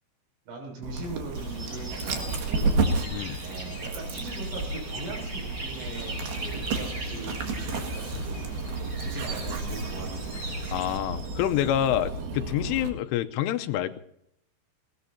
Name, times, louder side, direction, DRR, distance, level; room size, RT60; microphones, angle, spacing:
voice 1, 0.5-2.9 3.4-8.5 9.0-10.4, right 2 dB, 85° right, 0 dB, 9.4 m, -40 dB
Dog, 0.8-12.9, right 3 dB, 60° right, 3.4 m, -32 dB
sound 1, 1.3-11.0, right 1 dB, 30° right, 6.4 m, -40 dB
voice 2, 10.7-14.0, left 12 dB, 85° left, 11 dB, 3.2 m, -27 dB
20.5 x 19.5 x 2.8 m, 0.73 s
omnidirectional pair, 5.8 m